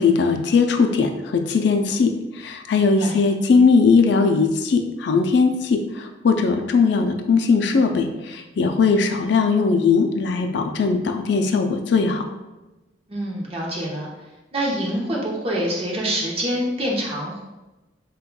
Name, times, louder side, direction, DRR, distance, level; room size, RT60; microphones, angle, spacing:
voice 1, 0.0-12.3, left 4 dB, 60° left, 5 dB, 0.4 m, -19 dB
voice 2, 2.8-3.2 13.1-14.1 14.5-17.4, equal, 30° right, -3 dB, 0.7 m, -26 dB
5.1 x 2.2 x 2.2 m, 1.1 s
head